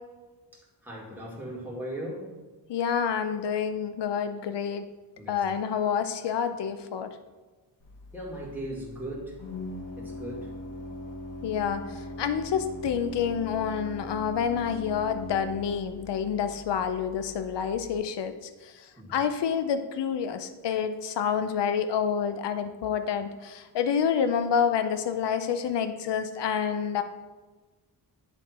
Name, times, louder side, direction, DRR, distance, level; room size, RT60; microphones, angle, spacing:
voice 1, 0.8-2.3 5.2-5.6 8.1-9.4 10.0-10.5 19.0-19.2, right 1 dB, 5° right, -5 dB, 2.0 m, -38 dB
voice 2, 2.7-4.9 5.3-7.1 11.4-18.3 18.6-18.7 19.1-27.0, left 7 dB, 70° left, 9 dB, 0.6 m, -28 dB
Organ, 7.8-18.0, left 1 dB, 45° left, 1.4 m, -41 dB
11.0 x 3.6 x 4.2 m, 1.3 s
wide cardioid pair, 105°, 43 cm